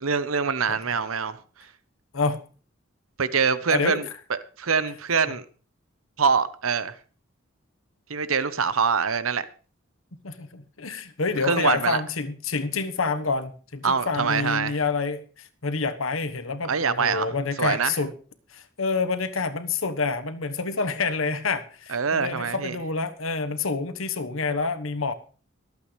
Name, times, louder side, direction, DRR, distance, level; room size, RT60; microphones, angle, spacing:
voice 1, 0.0-1.4 3.2-4.0 4.3-5.4 6.2-6.9 8.1-9.5 11.4-12.0 13.8-14.8 16.7-17.3 17.6-18.0 21.9-22.7, right 5 dB, 90° right, 0.9 m, -24 dB
voice 2, 3.7-4.0 5.3-5.4 10.2-18.1 18.5-25.1, left 4 dB, 80° left, 1.2 m, -28 dB
23.5 x 8.5 x 3.3 m
head